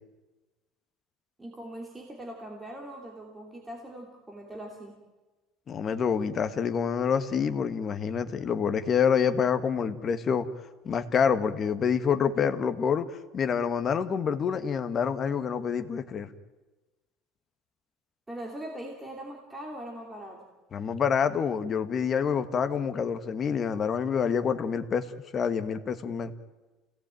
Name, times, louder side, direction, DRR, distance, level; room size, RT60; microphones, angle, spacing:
voice 1, 1.4-5.0 18.3-20.5, right 1 dB, 10° right, 0 dB, 2.8 m, -41 dB
voice 2, 5.7-10.5 10.8-16.3 20.7-25.0 25.3-26.3, left 7 dB, 25° left, 10 dB, 1.5 m, -27 dB
29.0 x 18.0 x 9.1 m, 1.2 s
cardioid pair, 165°, 0 cm